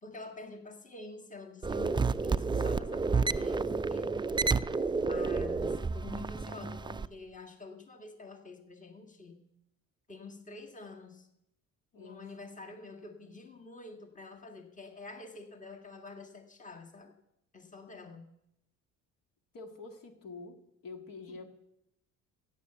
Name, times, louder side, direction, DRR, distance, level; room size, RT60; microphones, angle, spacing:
voice 1, 0.0-4.2 5.0-9.4 10.1-11.3 12.0-17.1 17.5-18.3 21.3-21.5, left 3 dB, 20° left, 4 dB, 1.8 m, -48 dB
sound 1, 1.6-7.1, right 4 dB, 10° right, 0.4 m, -30 dB
voice 2, 11.9-12.3 13.0-13.2 19.5-21.5, left 3 dB, 55° left, 5 dB, 2.1 m, -47 dB
15.5 x 8.0 x 6.8 m, 0.82 s
hypercardioid pair, 60°, 38 cm